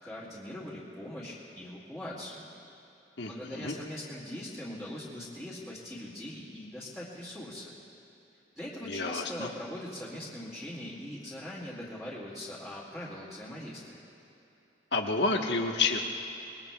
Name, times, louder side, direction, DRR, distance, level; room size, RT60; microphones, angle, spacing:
voice 1, 0.0-2.5 3.3-7.7 8.6-14.0, left 1 dB, ahead, -9 dB, 2.3 m, -41 dB
voice 2, 3.2-3.7 8.8-9.5 14.9-16.0, left 3 dB, 80° left, 2 dB, 1.3 m, -29 dB
25.5 x 21.0 x 2.4 m, 3.0 s
head